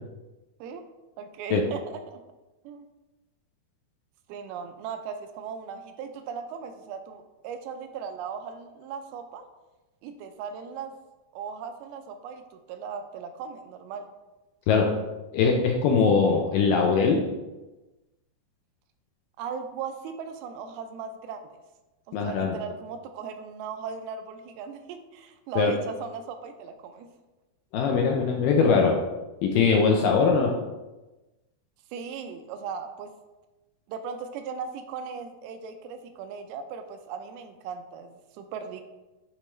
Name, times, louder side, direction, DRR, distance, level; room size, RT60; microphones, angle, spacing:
voice 1, 1.2-2.2 2.6-2.9 4.3-9.5 10.0-10.9 11.3-14.1 19.4-21.4 22.1-27.1 31.9-33.1 33.9-38.8, right 6 dB, 85° right, 7 dB, 2.5 m, -37 dB
voice 2, 15.3-17.2 22.1-22.6 25.6-25.7 27.7-29.0 29.4-30.5, left 5 dB, 80° left, 1 dB, 2.0 m, -21 dB
9.9 x 3.5 x 3.1 m, 1.1 s
omnidirectional pair, 4.4 m